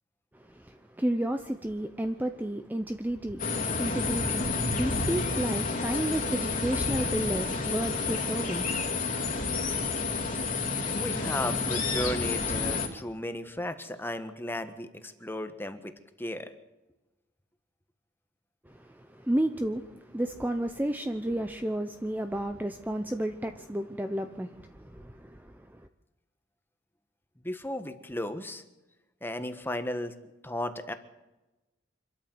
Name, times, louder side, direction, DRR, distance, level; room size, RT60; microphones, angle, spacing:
voice 1, 0.3-8.7 18.7-25.8, right 1 dB, 10° right, 0.8 m, -32 dB
sound 1, 3.4-12.9, left 4 dB, 45° left, 2.9 m, -30 dB
voice 2, 10.9-15.9 16.2-16.5 27.4-28.6 29.2-30.1 30.4-30.9, left 1 dB, 10° left, 1.5 m, -35 dB
26.0 x 13.0 x 7.9 m
head